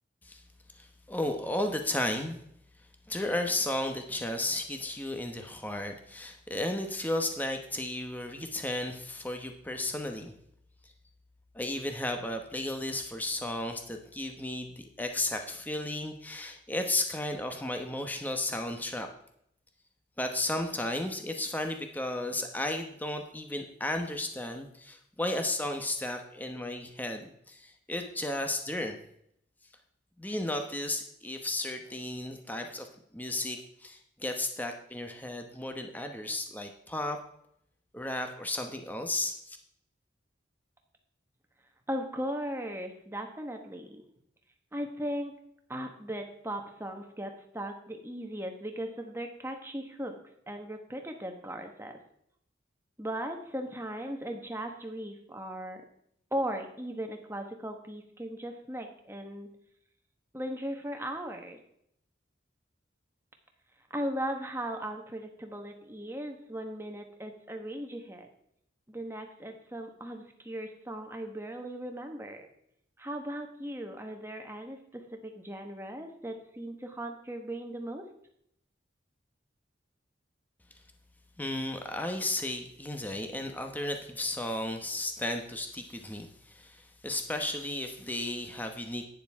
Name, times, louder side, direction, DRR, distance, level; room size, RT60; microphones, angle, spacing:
voice 1, 0.7-2.4 3.1-10.3 11.5-19.1 20.2-29.0 30.2-32.9 33.1-37.2 37.9-39.6 81.4-89.0, left 1 dB, 10° left, 5 dB, 0.9 m, -34 dB
voice 2, 41.9-44.0 44.7-45.3 45.7-50.1 50.5-51.9 53.0-55.8 56.3-59.5 60.3-61.6 63.9-68.3 68.9-72.5 73.0-78.1, equal, 15° right, 4 dB, 1.3 m, -37 dB
11.5 x 9.7 x 3.6 m, 0.71 s
head